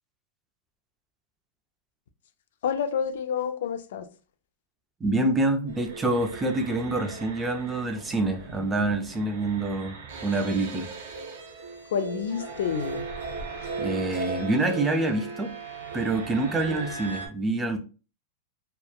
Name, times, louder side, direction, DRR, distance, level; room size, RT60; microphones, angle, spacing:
voice 1, 2.6-4.1 11.9-13.1, left 7 dB, 80° left, 0.3 m, -28 dB
voice 2, 5.0-10.0 10.2-10.9 13.8-15.5 15.9-17.8, right 2 dB, 10° right, 0.4 m, -26 dB
sound 1, 5.7-17.3, right 4 dB, 85° right, 0.6 m, -37 dB
2.9 x 2.1 x 2.2 m
supercardioid pair, 155°, 0 cm